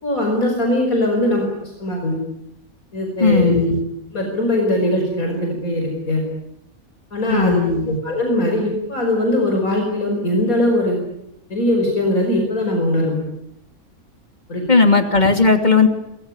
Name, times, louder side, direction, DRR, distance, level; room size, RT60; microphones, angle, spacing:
voice 1, 0.0-2.2 2.9-3.5 4.1-6.2 7.1-7.6 8.0-11.0 11.5-13.2 14.5-14.6, left 1 dB, 75° left, 2 dB, 5.5 m, -20 dB
voice 2, 3.2-3.8 7.3-8.0 14.7-15.9, left 4 dB, 30° left, 6 dB, 2.9 m, -16 dB
28.0 x 19.5 x 9.8 m, 0.86 s
omnidirectional pair, 1.5 m